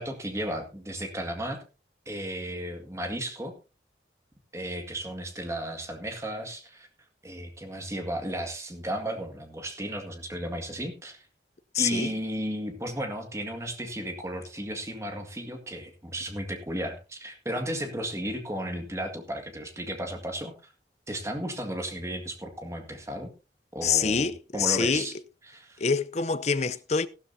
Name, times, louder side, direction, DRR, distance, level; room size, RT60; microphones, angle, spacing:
voice 1, 0.0-1.6 2.1-3.5 4.5-6.9 7.2-11.2 11.8-20.7 21.1-23.3 23.7-25.1 25.5-25.8, right 1 dB, 15° right, 1.9 m, -34 dB
voice 2, 11.7-12.1 23.8-25.1 25.8-27.1, left 5 dB, 40° left, 0.6 m, -26 dB
14.5 x 12.5 x 2.7 m
head